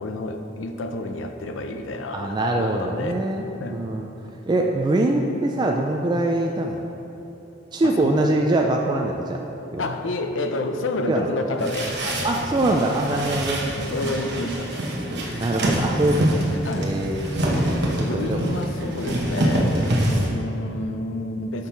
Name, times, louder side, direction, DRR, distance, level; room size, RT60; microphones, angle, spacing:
voice 1, 0.0-3.2 3.6-3.8 7.8-8.2 9.8-12.3 13.1-13.4 13.8-15.6 16.5-17.0 17.5-21.7, left 2 dB, 85° left, 6 dB, 0.5 m, -30 dB
voice 2, 2.1-4.1 4.5-6.8 7.7-9.4 9.7-9.9 11.1-11.3 12.2-13.6 15.4-16.5 16.8-17.4 18.0-18.4 19.7-20.0, right 1 dB, 25° right, 1 dB, 0.3 m, -23 dB
sound 1, 11.6-20.3, right 1 dB, 60° right, 1.1 m, -25 dB
6.6 x 5.5 x 4.5 m, 3.0 s
head